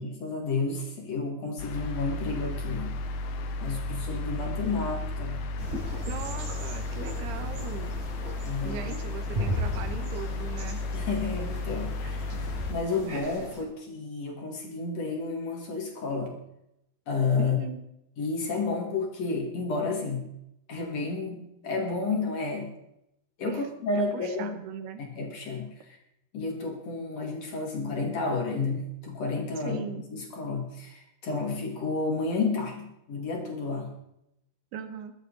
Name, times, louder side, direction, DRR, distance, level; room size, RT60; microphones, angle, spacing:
voice 1, 0.0-2.9 3.6-5.4 8.4-8.9 10.9-12.3 12.7-16.3 17.1-17.6 18.2-20.3 20.7-22.7 23.4-24.6 25.0-26.0 26.3-29.8 30.1-33.9, left 4 dB, 45° left, 1 dB, 3.2 m, -31 dB
sound 1, 1.6-12.7, left 2 dB, 70° left, 2.8 m, -33 dB
sound 2, 5.6-13.6, equal, 55° right, 6.9 m, -37 dB
voice 2, 6.1-8.0 8.6-10.8 17.4-17.8 23.5-23.6 23.9-25.0 29.6-30.0 34.7-35.1, right 7 dB, 85° right, 8 dB, 3.3 m, -39 dB
22.5 x 9.2 x 4.1 m, 0.80 s
omnidirectional pair, 4.5 m